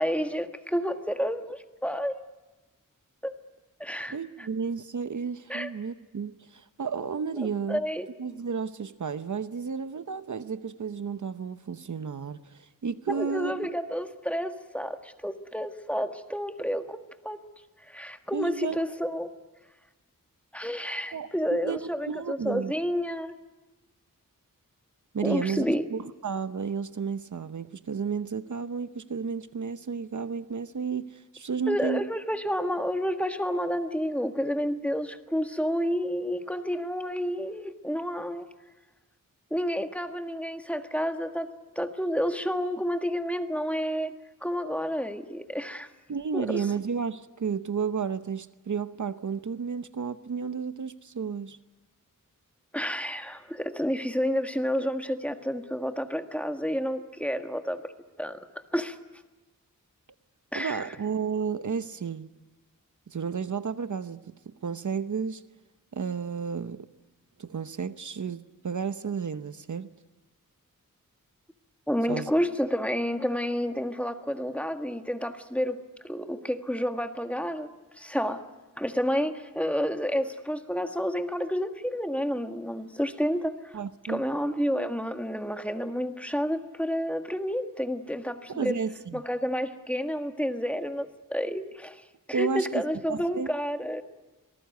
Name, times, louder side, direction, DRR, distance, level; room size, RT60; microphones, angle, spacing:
voice 1, 0.0-2.2 3.2-3.3 3.8-4.5 5.5-5.7 7.4-8.1 13.1-17.0 17.2-17.4 17.9-19.3 20.5-23.4 25.2-25.8 31.7-38.5 39.5-41.5 41.8-44.2 44.4-45.9 46.3-46.6 52.7-57.9 58.2-58.5 58.7-59.0 60.5-60.8 71.9-75.8 76.0-77.7 78.0-78.4 78.8-83.8 84.1-88.8 89.1-92.0 92.3-94.0, equal, 5° left, 6 dB, 1.6 m, -30 dB
voice 2, 4.1-7.8 8.2-13.7 18.3-18.8 21.1-22.7 25.1-32.0 46.1-51.6 60.5-62.3 63.1-65.4 65.9-66.9 67.4-69.9 72.1-72.3 83.7-84.2 88.5-89.2 92.3-92.8 93.1-93.5, right 6 dB, 60° right, 12 dB, 0.9 m, -32 dB
26.5 x 19.5 x 9.4 m, 1.1 s
wide cardioid pair, 85°, 33 cm